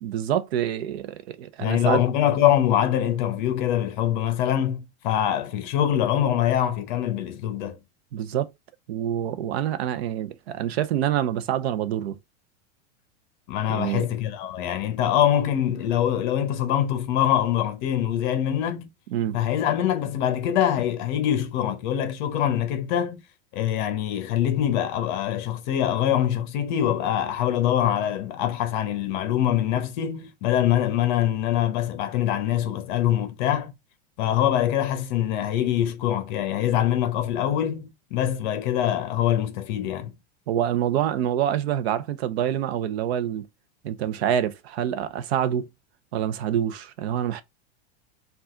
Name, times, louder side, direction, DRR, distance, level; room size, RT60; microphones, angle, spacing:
voice 1, 0.0-2.0 8.1-8.5 8.9-12.2 13.7-14.1 19.1-19.4 40.5-43.4 43.8-45.7 46.1-47.4, right 10 dB, 70° right, 0.7 m, -26 dB
voice 2, 1.6-7.8 13.5-18.9 19.3-23.2 23.5-33.7 34.2-40.1, left 11 dB, 45° left, 0.9 m, -24 dB
4.8 x 2.5 x 3.7 m
supercardioid pair, 170°, 33 cm